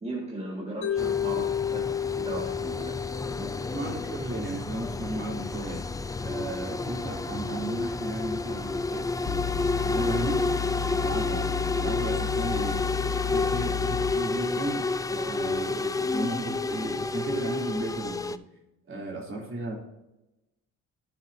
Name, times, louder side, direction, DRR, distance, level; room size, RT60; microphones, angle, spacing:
voice 1, 0.0-3.5 18.9-19.0, right 2 dB, 20° right, -3 dB, 1.8 m, -37 dB
Mallet percussion, 0.8-4.9, left 8 dB, 65° left, 2.2 m, -32 dB
sound 1, 1.0-18.4, left 3 dB, 10° left, 0.3 m, -30 dB
voice 2, 3.5-5.8 6.2-10.4 11.0-12.8 13.3-18.4 18.9-19.8, right 2 dB, 40° right, -1 dB, 3.0 m, -35 dB
sound 2, 9.3-14.1, left 8 dB, 45° left, 0.9 m, -32 dB
12.0 x 7.0 x 2.7 m, 0.95 s
cardioid pair, 90°, 30 cm